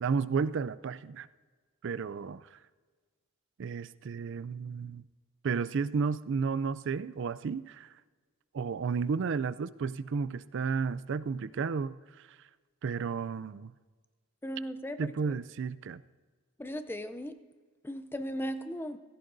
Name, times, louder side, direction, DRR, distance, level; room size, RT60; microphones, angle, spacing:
voice 1, 0.0-1.3 1.8-2.6 3.6-5.0 5.4-7.9 8.5-12.0 12.8-13.7 15.0-16.0, right 5 dB, 55° right, 16 dB, 0.4 m, -32 dB
voice 2, 14.4-15.1 16.6-17.3 17.8-19.0, equal, 10° left, 10 dB, 0.5 m, -37 dB
18.0 x 15.5 x 2.6 m, 1.4 s
head